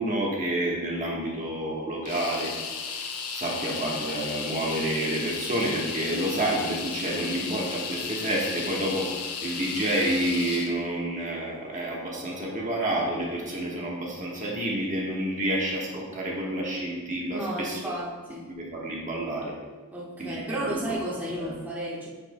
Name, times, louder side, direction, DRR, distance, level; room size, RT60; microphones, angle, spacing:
voice 1, 0.0-2.5 2.8-17.8 18.5-19.5 20.2-20.9 21.4-21.5, right 1 dB, 35° right, -3 dB, 1.3 m, -29 dB
sound 1, 2.0-10.7, left 5 dB, 85° left, 0.8 m, -34 dB
voice 2, 17.3-18.4 19.9-22.1, right 1 dB, 10° right, -6 dB, 1.2 m, -33 dB
9.5 x 6.6 x 2.2 m, 1.4 s
head